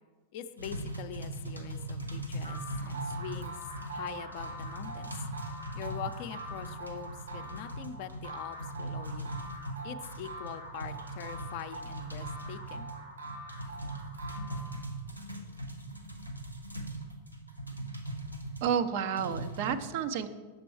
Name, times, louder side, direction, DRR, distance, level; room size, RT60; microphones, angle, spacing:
voice 1, 0.3-3.6 3.9-5.2 5.7-9.3 9.8-12.9 14.3-14.4, left 10 dB, 45° left, 9 dB, 0.5 m, -43 dB
sound 1, 0.6-18.7 19.2-19.7, right 1 dB, 90° right, 0.8 m, -40 dB
sound 2, 2.4-15.0, right 1 dB, 75° right, 2.6 m, -44 dB
voice 2, 18.6-20.3, right 7 dB, 50° right, 10 dB, 0.5 m, -30 dB
7.9 x 6.8 x 4.7 m, 1.2 s
figure-of-eight pair, 90°, 0 cm